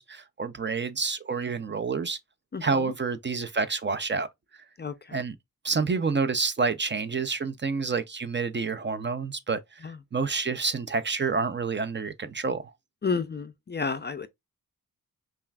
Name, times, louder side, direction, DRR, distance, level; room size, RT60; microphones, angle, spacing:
voice 1, 0.0-2.2 2.6-4.3 5.1-5.4 5.6-12.7, right 4 dB, 35° right, 0.5 m, -28 dB
voice 2, 13.0-14.3, left 5 dB, 30° left, 0.4 m, -30 dB
5.5 x 2.4 x 2.2 m
cardioid pair, 75°, 35 cm